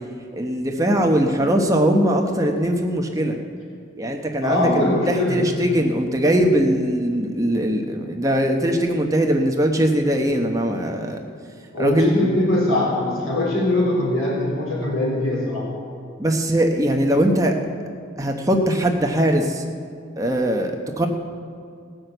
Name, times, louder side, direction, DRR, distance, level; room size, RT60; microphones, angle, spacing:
voice 1, 0.3-3.4 4.0-11.2 11.8-12.1 16.2-17.6 18.2-19.6 20.2-21.1, right 1 dB, 15° right, 2 dB, 0.9 m, -20 dB
voice 2, 4.4-5.4 11.7-15.7, left 1 dB, 85° left, -4 dB, 3.6 m, -21 dB
18.5 x 6.4 x 7.8 m, 2.2 s
head